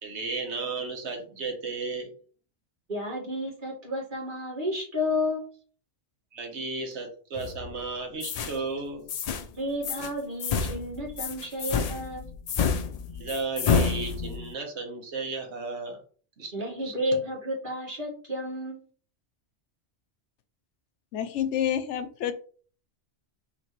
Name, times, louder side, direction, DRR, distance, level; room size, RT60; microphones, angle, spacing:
voice 1, 0.0-2.1 6.3-9.1 13.1-16.0 16.4-16.9, right 3 dB, 70° right, 3 dB, 1.3 m, -34 dB
voice 2, 2.9-5.5 9.6-12.3 16.5-18.8, left 1 dB, 45° right, -3 dB, 1.9 m, -31 dB
sound 1, 7.4-7.8 8.2-8.6 9.1-9.5 9.8-10.1 10.4-14.5, left 5 dB, 65° left, 0.4 m, -29 dB
voice 3, 21.1-22.3, left 10 dB, 80° left, 11 dB, 0.9 m, -28 dB
5.8 x 3.0 x 3.0 m, 0.43 s
omnidirectional pair, 1.2 m